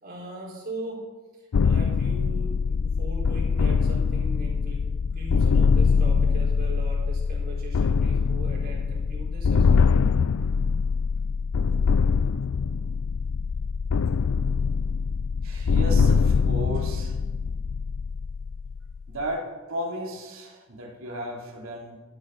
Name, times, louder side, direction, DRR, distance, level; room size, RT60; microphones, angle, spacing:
voice 1, 0.0-1.0 1.4-4.8 5.1-9.9, right 1 dB, 45° right, -3 dB, 4.5 m, -39 dB
sound 1, 1.5-19.2, left 5 dB, 75° left, 0.4 m, -23 dB
voice 2, 15.4-17.2 19.1-22.0, equal, 70° right, 0 dB, 2.8 m, -34 dB
13.0 x 12.0 x 5.4 m, 1.3 s
head